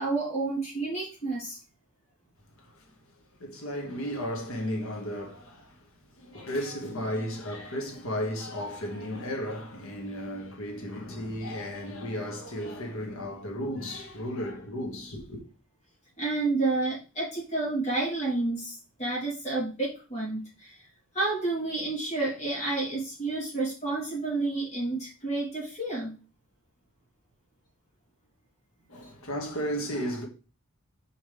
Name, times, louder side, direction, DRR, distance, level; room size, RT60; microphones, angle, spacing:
voice 1, 0.0-1.6 6.3-6.5 16.2-20.9 21.1-26.1, right 3 dB, 35° left, 3.4 m, -30 dB
voice 2, 2.6-3.0 3.4-15.4 28.9-30.3, equal, 70° left, 1.9 m, -34 dB
5.9 x 5.1 x 3.4 m
head